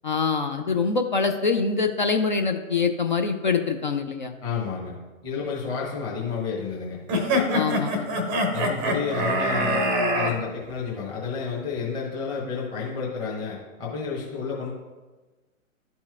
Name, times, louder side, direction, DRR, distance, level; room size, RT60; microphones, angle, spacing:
voice 1, 0.0-4.3 7.5-8.1, left 5 dB, 35° left, 5 dB, 0.4 m, -24 dB
voice 2, 4.4-5.0 5.2-7.0 8.5-14.7, left 5 dB, 10° left, -6 dB, 0.9 m, -30 dB
sound 1, 7.1-10.3, equal, 15° right, 0.6 m, -24 dB
11.5 x 4.3 x 2.4 m, 1.2 s
figure-of-eight pair, 125°, 42 cm